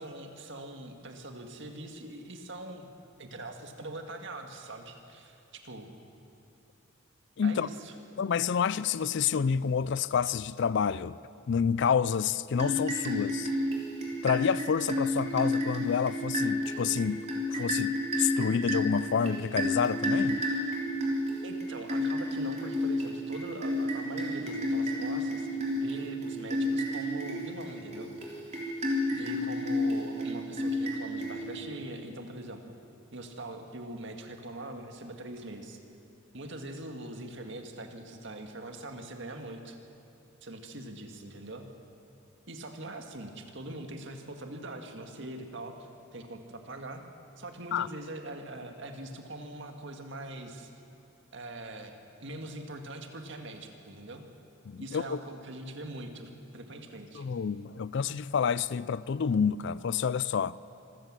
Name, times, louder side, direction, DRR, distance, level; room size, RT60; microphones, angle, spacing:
voice 1, 0.0-2.9 3.2-5.9 7.4-7.9 21.4-25.5 25.7-28.2 29.1-32.7 33.1-35.8 36.3-39.8 40.4-41.7 42.5-47.0 47.4-50.7 51.3-51.9 52.2-54.2 54.8-57.2, right 1 dB, 60° right, 1.9 m, -42 dB
voice 2, 7.4-7.7 8.2-11.2 11.5-13.5 14.2-20.4 47.7-47.9 54.7-55.2 57.1-60.6, left 6 dB, 55° left, 0.4 m, -29 dB
sound 1, 12.5-31.8, left 1 dB, 30° right, 3.5 m, -31 dB
26.0 x 14.5 x 7.5 m
head